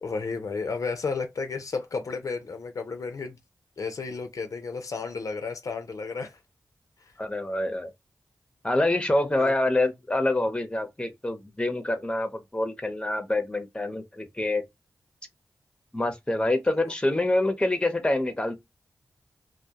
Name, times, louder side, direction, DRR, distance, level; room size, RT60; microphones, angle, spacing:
voice 1, 0.0-3.4 3.8-6.4 7.0-7.1 9.4-9.5 17.1-17.2, left 4 dB, 65° left, 0.5 m, -32 dB
voice 2, 7.2-7.9 8.6-14.7 15.9-18.6, left 2 dB, 15° left, 0.7 m, -26 dB
2.2 x 2.2 x 2.7 m
cardioid pair, 45°, 6 cm